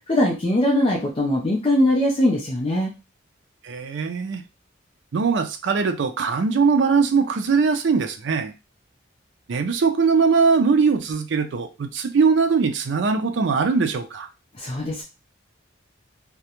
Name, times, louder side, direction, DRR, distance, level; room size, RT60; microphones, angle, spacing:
voice 1, 0.1-2.9 14.6-15.0, left 1 dB, 30° left, -1 dB, 0.4 m, -21 dB
voice 2, 3.6-4.4 5.1-8.5 9.5-14.3, right 5 dB, 75° right, 8 dB, 0.4 m, -21 dB
2.4 x 2.1 x 2.9 m, 0.27 s
head